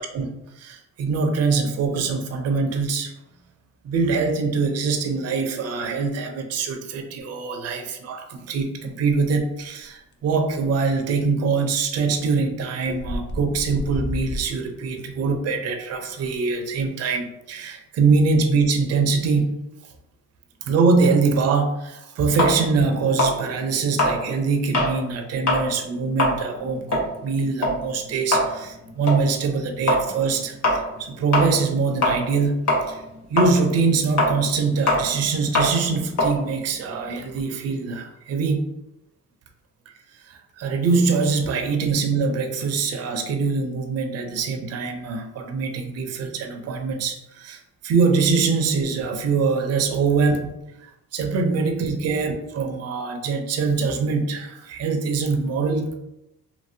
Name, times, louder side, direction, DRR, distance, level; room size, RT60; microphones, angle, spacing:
voice 1, 0.0-3.1 3.8-19.6 20.7-33.0 33.3-38.7 40.3-50.5 51.1-55.9, right 4 dB, 55° right, 5 dB, 0.5 m, -23 dB
sound 1, 12.1-12.3 12.8-14.4, left 1 dB, 40° left, 0.5 m, -30 dB
sound 2, 22.4-25.0 25.3-25.7 26.0-32.4 32.7-37.4, left 1 dB, 70° left, 1.0 m, -23 dB
2.8 x 2.6 x 2.6 m, 0.89 s
cardioid pair, 90°, 30 cm